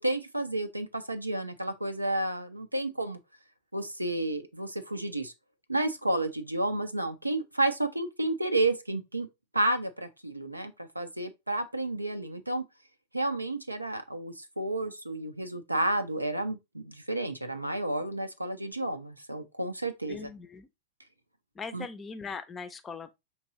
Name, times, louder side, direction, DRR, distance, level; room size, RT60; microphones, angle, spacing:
voice 1, 0.0-3.2 3.7-5.3 5.7-9.3 9.5-12.6 13.1-20.3 21.7-21.9, right 2 dB, 85° right, 0.4 m, -31 dB
voice 2, 20.1-20.7 21.6-23.1, left 5 dB, 20° left, 0.5 m, -40 dB
5.2 x 2.8 x 2.8 m
figure-of-eight pair, 90°, 0 cm